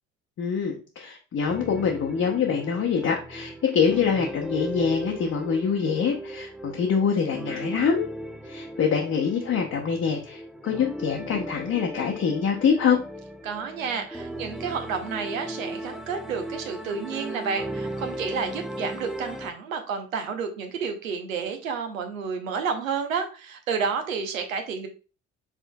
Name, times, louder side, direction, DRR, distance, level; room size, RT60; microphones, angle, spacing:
voice 1, 0.4-8.1 8.4-13.0, left 6 dB, 40° left, -1 dB, 0.9 m, -25 dB
sound 1, 1.5-19.5, right 1 dB, ahead, 0.5 m, -37 dB
voice 2, 13.4-24.9, right 6 dB, 85° right, 6 dB, 0.8 m, -30 dB
5.9 x 3.6 x 2.2 m, 0.34 s
figure-of-eight pair, 50°, 39 cm